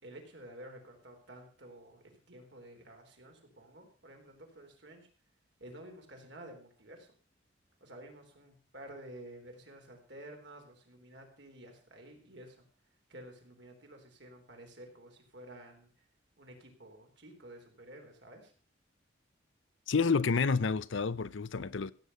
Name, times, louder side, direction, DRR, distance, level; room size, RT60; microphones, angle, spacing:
voice 1, 0.0-5.1 5.6-7.1 7.8-12.7 13.1-16.0 16.4-18.5, right 1 dB, 60° right, 3.6 m, -51 dB
voice 2, 19.9-21.9, left 4 dB, 75° left, 0.6 m, -29 dB
16.0 x 8.3 x 5.5 m
head